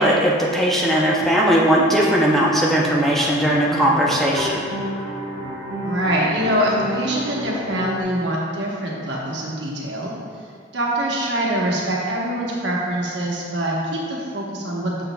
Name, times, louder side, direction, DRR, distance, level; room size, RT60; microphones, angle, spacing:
voice 1, 0.0-4.7, equal, ahead, -5 dB, 0.5 m, -18 dB
sound 1, 2.4-8.0, equal, 85° right, 0.8 m, -31 dB
voice 2, 5.8-10.1 10.7-14.9, right 1 dB, 65° right, -4 dB, 1.1 m, -24 dB
7.0 x 6.1 x 2.2 m, 2.1 s
head